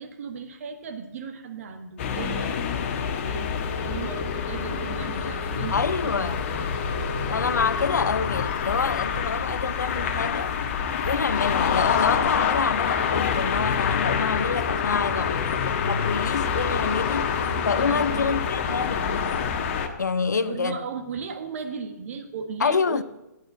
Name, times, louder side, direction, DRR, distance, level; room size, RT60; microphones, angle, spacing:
voice 1, 0.0-2.7 3.2-7.2 15.1-15.3 17.8-19.0 20.3-23.0, right 5 dB, 50° right, 1.5 m, -36 dB
sound 1, 2.0-19.9, left 6 dB, 40° left, 1.3 m, -26 dB
voice 2, 5.7-6.4 7.3-10.6 11.0-17.4 17.6-19.5 20.0-20.8 22.6-23.0, left 5 dB, 70° left, 0.7 m, -27 dB
9.4 x 9.3 x 7.3 m
figure-of-eight pair, 130°, 10 cm